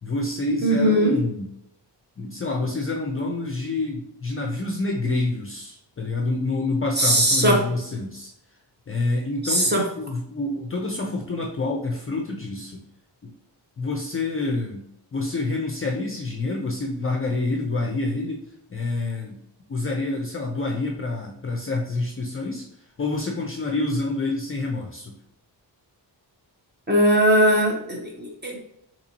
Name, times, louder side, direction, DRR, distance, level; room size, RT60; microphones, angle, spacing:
voice 1, 0.0-1.5 2.2-8.3 8.9-12.8 13.2-13.3 13.8-14.8 15.1-18.4 18.7-19.4 19.7-22.6 23.0-25.1, left 2 dB, 35° left, 1 dB, 0.4 m, -27 dB
voice 2, 0.6-1.2 7.0-7.6 9.4-9.8 26.9-28.6, right 1 dB, 25° right, -1 dB, 0.8 m, -19 dB
4.0 x 2.9 x 2.8 m, 0.76 s
wide cardioid pair, 160°, 41 cm